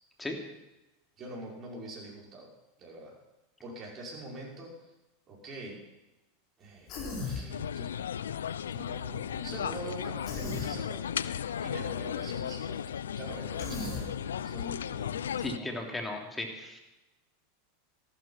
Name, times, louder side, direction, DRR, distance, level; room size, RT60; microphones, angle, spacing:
voice 1, 1.2-2.5 2.8-3.1 3.6-4.9 5.3-5.8 6.6-7.9 8.7-11.1 11.6-12.8 13.1-15.7, right 1 dB, 35° right, -2 dB, 5.7 m, -44 dB
Human voice, 6.9-7.5 10.2-10.7 13.6-14.1, left 4 dB, 50° left, 4.7 m, -36 dB
sound 1, 7.5-15.6, left 9 dB, 85° left, 0.4 m, -35 dB
voice 2, 15.4-16.8, left 2 dB, 15° left, 2 dB, 3.1 m, -36 dB
14.0 x 12.5 x 5.9 m, 0.99 s
hypercardioid pair, 100°, 0 cm